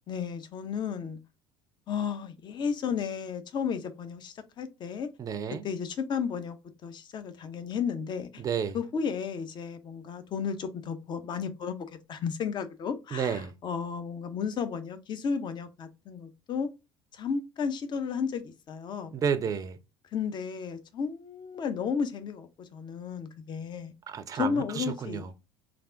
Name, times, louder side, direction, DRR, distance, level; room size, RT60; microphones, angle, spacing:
voice 1, 0.1-1.2 1.9-5.1 5.6-6.6 6.8-8.4 8.7-16.7 17.1-19.2 20.1-23.9 24.3-25.3, left 6 dB, 35° left, 0.6 m, -33 dB
voice 2, 5.2-5.6 8.4-8.8 13.1-13.5 19.1-19.8 24.1-25.3, right 7 dB, 30° right, 0.4 m, -31 dB
3.3 x 2.4 x 2.5 m
figure-of-eight pair, 60°, 13 cm